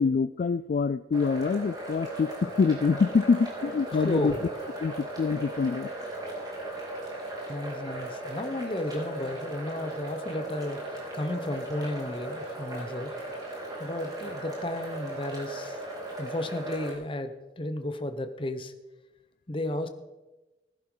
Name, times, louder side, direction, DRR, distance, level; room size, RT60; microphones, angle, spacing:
voice 1, 0.0-4.3 4.8-5.9, left 5 dB, 50° left, 14 dB, 0.3 m, -25 dB
sound 1, 1.1-16.9, right 1 dB, 25° right, 3.7 m, -37 dB
voice 2, 3.9-4.4 7.5-13.1 13.4-13.5 13.8-15.8 16.2-18.7 19.5-19.9, left 1 dB, 30° left, 8 dB, 0.9 m, -33 dB
19.0 x 11.0 x 3.9 m, 1.1 s
head